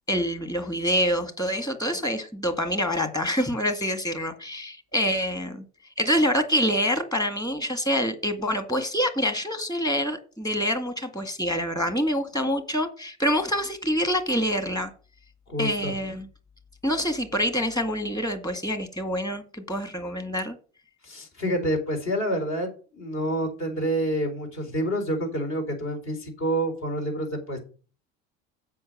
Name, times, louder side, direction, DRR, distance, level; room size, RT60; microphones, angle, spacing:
voice 1, 0.1-5.6 6.0-14.9 15.6-16.3 16.8-20.6, equal, 10° left, 1.9 m, -26 dB
voice 2, 15.5-15.9 21.0-27.6, equal, 50° left, 4.2 m, -28 dB
7.7 x 5.5 x 6.5 m
hypercardioid pair, 85°, 33 cm